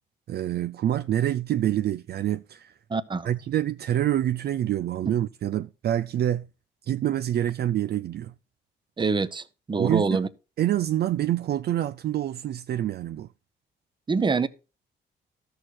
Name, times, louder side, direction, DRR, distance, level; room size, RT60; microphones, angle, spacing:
voice 1, 0.3-2.7 3.2-6.5 6.9-8.3 9.8-10.0 10.6-13.3, right 12 dB, 55° right, 0.4 m, -26 dB
voice 2, 2.9-3.3 9.0-10.3 14.1-14.5, right 4 dB, 25° right, 0.8 m, -25 dB
13.0 x 6.5 x 4.5 m
cardioid pair, 90°, 20 cm